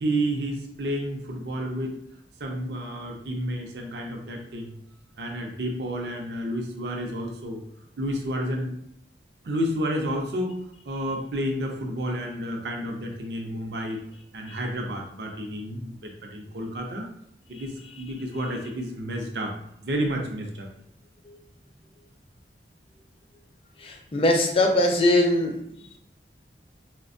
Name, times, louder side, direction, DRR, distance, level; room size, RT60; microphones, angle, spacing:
voice 1, 0.0-1.9 2.4-4.7 5.2-7.6 8.0-8.7 9.4-10.5 10.9-14.0 14.3-17.1 17.5-19.5 19.8-20.7, equal, 75° right, 1 dB, 0.6 m, -30 dB
voice 2, 23.8-26.0, left 1 dB, 30° left, 2 dB, 0.4 m, -22 dB
4.2 x 2.1 x 2.5 m, 0.72 s
head